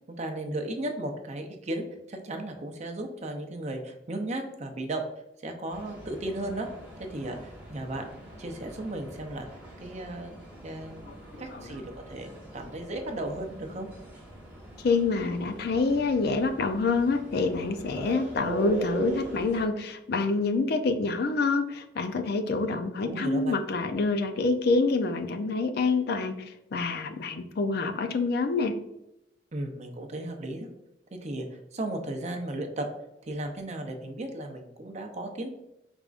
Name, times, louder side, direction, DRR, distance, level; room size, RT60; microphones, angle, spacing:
voice 1, 0.1-5.0 5.4-6.7 7.0-8.1 8.4-9.5 9.8-10.3 10.6-11.1 11.4-13.9 23.0-23.6 29.5-30.7 31.1-32.9 33.3-35.5, right 1 dB, 40° right, 4 dB, 0.6 m, -35 dB
sound 1, 5.7-19.7, right 1 dB, 10° right, 1.1 m, -41 dB
voice 2, 11.1-11.7 14.8-28.7, left 3 dB, 60° left, 8 dB, 0.4 m, -27 dB
5.0 x 3.5 x 2.4 m, 0.89 s
head